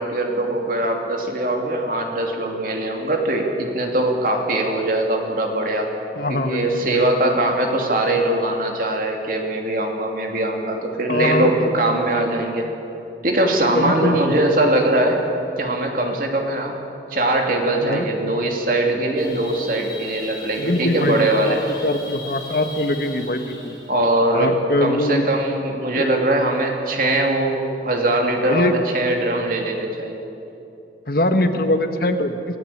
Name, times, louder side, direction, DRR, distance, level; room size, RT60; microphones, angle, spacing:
voice 1, 0.0-5.9 6.3-12.7 13.2-15.2 15.6-16.8 17.1-21.6 23.9-24.5 24.8-30.2, right 1 dB, 50° right, 2 dB, 2.9 m, -21 dB
voice 2, 6.1-7.1 11.1-11.7 13.7-14.2 17.8-18.0 20.6-23.8 24.3-25.2 26.0-26.1 28.5-28.7 31.1-32.4, left 1 dB, 55° left, 6 dB, 1.6 m, -22 dB
sound 1, 19.2-23.9, left 2 dB, 25° left, 4.9 m, -39 dB
24.5 x 15.0 x 8.7 m, 2.9 s
head